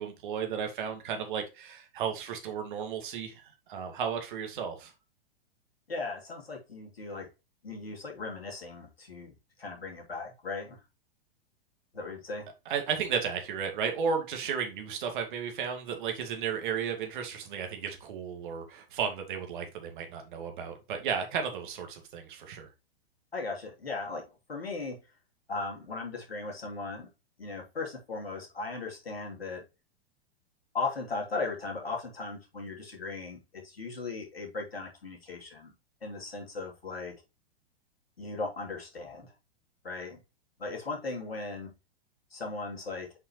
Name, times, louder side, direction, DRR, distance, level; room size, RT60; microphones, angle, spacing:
voice 1, 0.0-4.9 12.7-22.7, right 7 dB, 55° right, 5 dB, 2.1 m, -34 dB
voice 2, 5.9-7.3 7.6-9.3 9.6-10.8 11.9-12.5 23.3-25.0 25.5-27.1 27.4-29.6 30.7-35.7 36.0-37.1 38.2-39.3 39.8-40.2 40.6-41.7 42.3-43.1, left 3 dB, 80° left, 0 dB, 3.3 m, -37 dB
8.0 x 5.6 x 3.1 m, 0.26 s
figure-of-eight pair, 105°, 30 cm